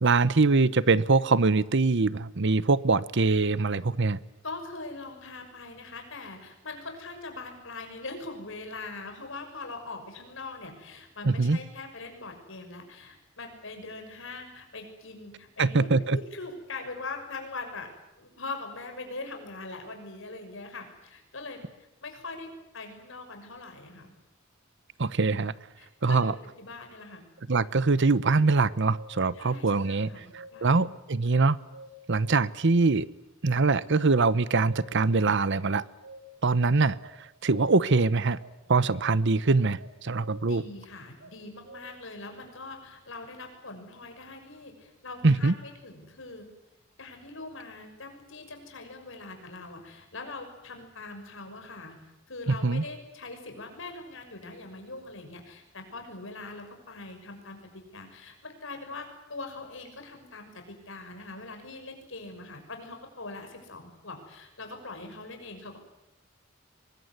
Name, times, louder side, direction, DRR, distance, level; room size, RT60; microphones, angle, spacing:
voice 1, 0.0-4.2 11.2-11.6 15.6-16.2 25.0-25.5 26.0-26.3 27.5-31.6 32.1-33.1 33.4-35.8 36.4-37.0 37.4-38.4 38.7-40.6 45.2-45.5 52.5-52.8, right 3 dB, 60° right, 17 dB, 0.9 m, -23 dB
voice 2, 4.4-17.9 18.2-24.1 25.8-27.2 29.3-30.9 40.4-46.5 47.0-52.0 52.3-65.8, left 3 dB, 65° left, 5 dB, 6.3 m, -42 dB
sound 1, 27.5-27.7 28.5-29.4 29.9-30.8 31.3-32.2 34.2-35.1 35.4-36.5 37.0-37.9 38.4-39.3 39.8-40.7 41.2-41.8, right 1 dB, 80° right, 6.9 m, -50 dB
23.5 x 21.5 x 9.6 m, 0.92 s
head